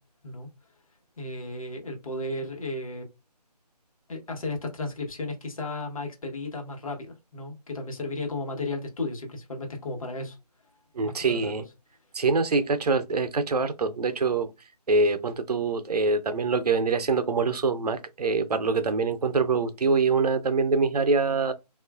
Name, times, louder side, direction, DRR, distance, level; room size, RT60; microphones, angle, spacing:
voice 1, 1.2-3.1 4.1-10.4 11.0-11.5, left 2 dB, 55° left, 1.1 m, -34 dB
voice 2, 11.0-11.6 12.1-14.5 14.9-21.5, right 4 dB, 70° right, 0.5 m, -24 dB
3.0 x 2.4 x 2.3 m
figure-of-eight pair, 160°, 21 cm